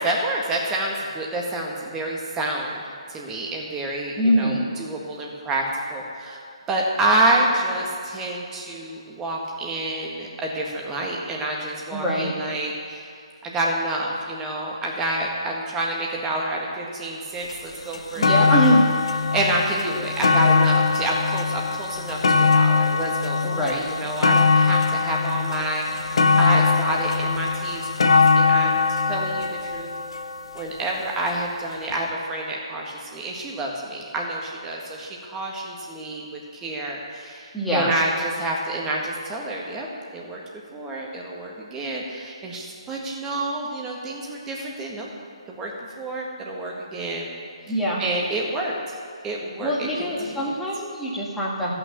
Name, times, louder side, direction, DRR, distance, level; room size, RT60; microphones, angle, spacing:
voice 1, 0.0-2.8 3.1-5.6 5.9-6.4 6.7-13.1 13.4-18.7 19.3-29.9 30.5-39.9 40.1-40.4 40.7-45.1 45.5-45.7 46.0-47.3 48.0-48.7 49.2-50.5, right 1 dB, 15° right, -1 dB, 1.7 m, -28 dB
voice 2, 4.2-4.6 11.9-12.3 18.2-18.9 23.4-23.9 37.5-37.9 47.7-48.0 49.6-51.7, equal, 5° left, -7 dB, 1.8 m, -23 dB
sound 1, 17.5-17.6 17.9-31.1 31.9-32.0, left 4 dB, 60° left, 0.9 m, -21 dB
15.5 x 6.0 x 6.8 m, 2.3 s
figure-of-eight pair, 140°, 3 cm